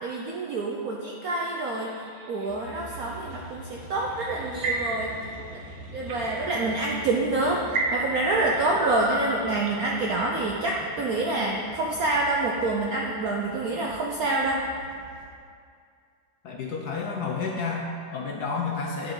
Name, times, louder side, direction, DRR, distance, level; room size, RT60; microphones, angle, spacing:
voice 1, 0.0-1.9 2.3-5.2 5.5-5.6 5.9-7.6 7.9-14.6, right 2 dB, 65° right, -2 dB, 0.9 m, -27 dB
sound 1, 1.7-3.0 4.0-5.3 5.7-6.2 6.9-7.0 7.7-9.9, right 2 dB, 85° right, 1.8 m, -30 dB
sound 2, 2.5-15.3, equal, 30° left, 0.6 m, -45 dB
voice 2, 16.4-19.1, left 4 dB, 65° left, 0 dB, 1.1 m, -30 dB
10.0 x 7.1 x 3.8 m, 2.3 s
omnidirectional pair, 2.2 m